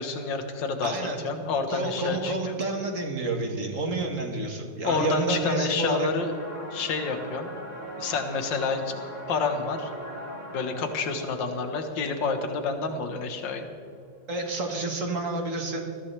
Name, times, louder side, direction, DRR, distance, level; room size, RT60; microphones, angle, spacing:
voice 1, 0.0-1.0 1.2-2.5 4.8-6.3 6.7-7.5 8.0-8.9 9.3-9.9 10.5-13.7, left 4 dB, 75° left, 6 dB, 2.0 m, -29 dB
voice 2, 0.8-1.2 1.7-6.1 14.3-15.8, right 2 dB, 45° right, 2 dB, 1.9 m, -29 dB
sound 1, 6.2-13.7, equal, 30° left, 3.2 m, -41 dB
20.0 x 14.5 x 3.4 m, 2.4 s
omnidirectional pair, 2.0 m